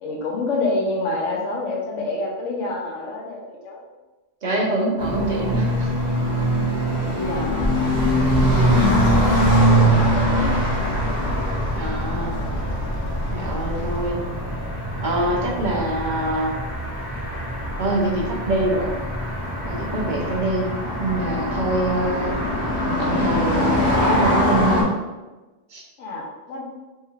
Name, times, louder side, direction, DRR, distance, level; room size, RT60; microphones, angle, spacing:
voice 1, 0.0-3.9 7.0-8.3 8.8-10.6 26.0-26.6, left 2 dB, 85° left, -1 dB, 1.0 m, -28 dB
voice 2, 4.4-5.7 8.7-8.8 11.7-12.4 13.3-14.2 15.0-16.5 17.8-18.9 19.7-20.7 21.0-22.4 22.9-24.9 25.7-25.8, right 2 dB, 50° right, -2 dB, 0.7 m, -24 dB
sound 1, 5.0-24.8, equal, 10° left, 1.2 m, -23 dB
sound 2, 8.2-14.1, left 1 dB, 70° left, 0.4 m, -27 dB
4.5 x 3.1 x 2.3 m, 1.2 s
omnidirectional pair, 1.2 m